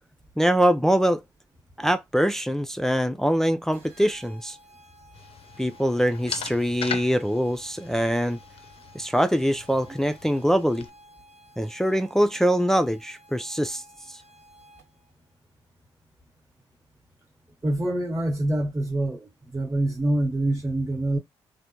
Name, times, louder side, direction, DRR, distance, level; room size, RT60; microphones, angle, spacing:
voice 1, 0.4-1.2 1.8-4.6 5.6-8.4 8.9-10.9 11.6-13.8 14.1-14.2, equal, 5° left, 0.4 m, -23 dB
sound 1, 3.7-15.1, equal, 85° right, 1.4 m, -53 dB
sound 2, 5.1-10.9, left 7 dB, 55° left, 0.5 m, -40 dB
voice 2, 17.6-21.2, right 1 dB, 20° right, 1.0 m, -25 dB
3.3 x 2.1 x 2.8 m
hypercardioid pair, 45°, 11 cm